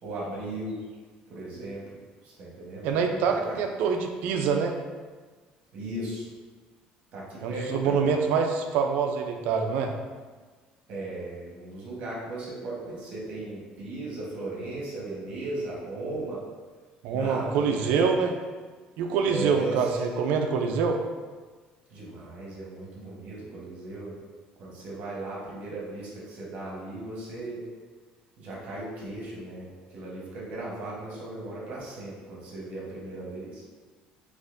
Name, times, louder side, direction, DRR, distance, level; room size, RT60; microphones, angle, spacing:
voice 1, 0.0-0.9 1.3-1.8 2.2-3.6 5.7-6.3 7.1-8.2 10.9-16.4 17.1-18.0 19.2-20.0 21.9-24.2 24.6-27.6 28.4-33.6, right 2 dB, 50° right, -5 dB, 1.2 m, -37 dB
voice 2, 2.8-4.7 7.4-9.9 17.0-18.3 19.0-21.0, right 5 dB, 75° right, 4 dB, 0.4 m, -25 dB
4.0 x 2.9 x 2.5 m, 1.4 s
cardioid pair, 155°, 3 cm